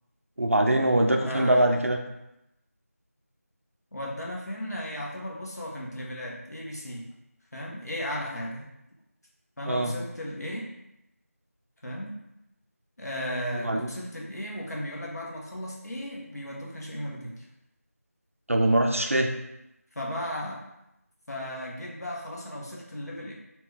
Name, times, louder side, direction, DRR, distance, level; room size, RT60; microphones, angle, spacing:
voice 1, 0.4-2.0 9.7-9.9 13.6-13.9 18.5-19.3, right 1 dB, 55° right, 3 dB, 0.6 m, -23 dB
voice 2, 1.2-1.8 3.9-7.1 7.5-8.7 9.6-10.7 11.8-12.2 13.0-17.4 19.9-20.6 21.3-23.3, equal, 85° left, -3 dB, 1.5 m, -35 dB
4.5 x 2.9 x 3.4 m, 0.87 s
figure-of-eight pair, 175°, 9 cm